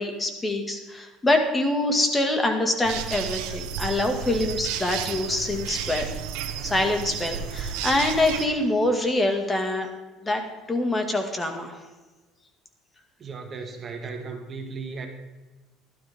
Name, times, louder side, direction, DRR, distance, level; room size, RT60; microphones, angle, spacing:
voice 1, 0.0-6.1 6.6-9.9 10.2-10.4 10.7-11.8, left 1 dB, 15° left, 4 dB, 2.0 m, -25 dB
sound 1, 2.8-8.5, right 8 dB, 85° right, 1.3 m, -32 dB
voice 2, 13.2-15.1, right 4 dB, 35° right, 4 dB, 1.7 m, -36 dB
16.5 x 12.5 x 3.7 m, 1.2 s
cardioid pair, 125°, 0 cm